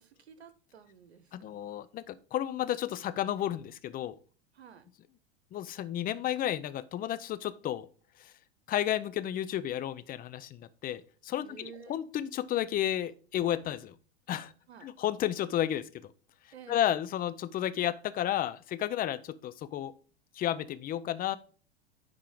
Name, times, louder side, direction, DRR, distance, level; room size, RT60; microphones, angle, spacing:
voice 1, 0.0-1.8 4.5-4.9 11.4-12.1 14.7-14.9 16.5-16.9, right 7 dB, 80° right, 12 dB, 1.0 m, -52 dB
voice 2, 1.3-4.2 5.5-7.9 8.2-8.3 8.7-13.9 14.3-14.5 14.8-16.1 16.7-19.9 20.3-21.4, left 11 dB, 30° left, 13 dB, 0.6 m, -32 dB
10.0 x 3.7 x 5.0 m, 0.39 s
hypercardioid pair, 90°, 32 cm